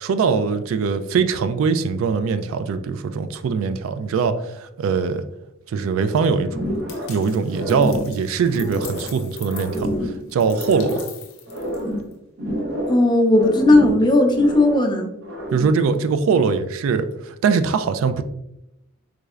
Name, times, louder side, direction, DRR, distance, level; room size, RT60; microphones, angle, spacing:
voice 1, 0.0-5.2 5.7-6.6 7.1-11.0 15.5-18.2, right 5 dB, 80° right, 11 dB, 0.3 m, -22 dB
sound 1, 6.5-7.2 7.5-9.1 9.5-11.1 11.5-13.1 13.3-14.9 15.2-15.8, equal, 65° right, 0.8 m, -28 dB
sound 2, 6.9-12.1, left 8 dB, 75° left, 0.5 m, -42 dB
voice 2, 12.9-15.1, left 2 dB, 20° left, 3 dB, 0.4 m, -16 dB
3.5 x 3.1 x 2.4 m, 0.85 s
head